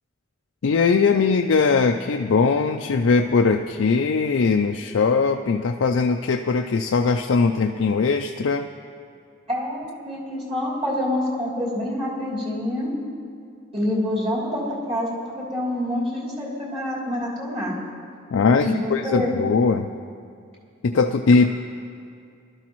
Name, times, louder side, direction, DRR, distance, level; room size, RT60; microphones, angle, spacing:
voice 1, 0.6-8.7 18.3-19.9 20.8-21.5, left 4 dB, 85° left, 4 dB, 0.4 m, -20 dB
voice 2, 9.5-12.9 13.7-14.6 14.9-17.7 18.6-19.3, left 1 dB, 30° right, -5 dB, 3.1 m, -26 dB
20.0 x 12.5 x 3.1 m, 2.4 s
head